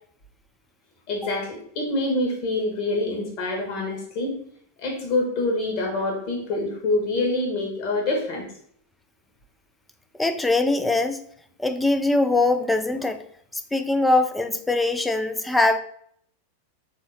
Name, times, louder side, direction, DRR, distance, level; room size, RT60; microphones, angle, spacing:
voice 1, 1.1-4.3 4.8-8.4, left 2 dB, 45° left, 1 dB, 1.3 m, -26 dB
voice 2, 10.2-11.2 11.6-13.2 13.7-15.8, left 2 dB, 5° left, 9 dB, 0.4 m, -22 dB
3.9 x 2.9 x 3.9 m, 0.65 s
figure-of-eight pair, 90°, 0 cm